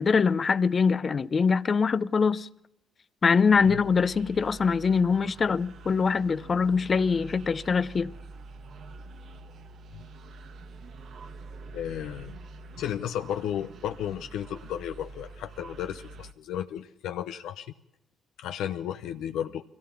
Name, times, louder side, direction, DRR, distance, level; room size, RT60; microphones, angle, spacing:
voice 1, 0.0-2.5 3.2-8.1, left 5 dB, 35° left, 0.7 m, -23 dB
sound 1, 3.5-16.3, right 3 dB, 65° right, 1.3 m, -46 dB
voice 2, 11.7-12.4 12.8-17.7 18.4-19.6, left 10 dB, 85° left, 0.7 m, -33 dB
22.5 x 17.0 x 7.1 m
cardioid pair, 100°, 0 cm